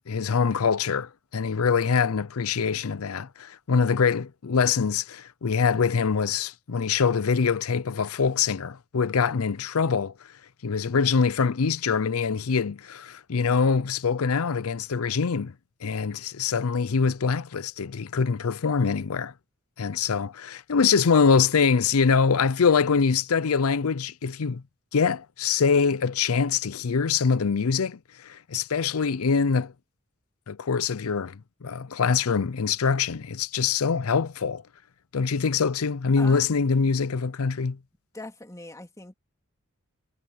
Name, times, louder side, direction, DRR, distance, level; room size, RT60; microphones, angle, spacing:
voice 1, 0.1-10.1 10.6-15.5 15.8-19.3 19.8-24.6 24.9-29.7 30.5-34.6 35.1-37.8, left 5 dB, 80° left, 0.6 m, -24 dB
voice 2, 38.1-39.1, left 2 dB, 15° left, 2.8 m, -40 dB
head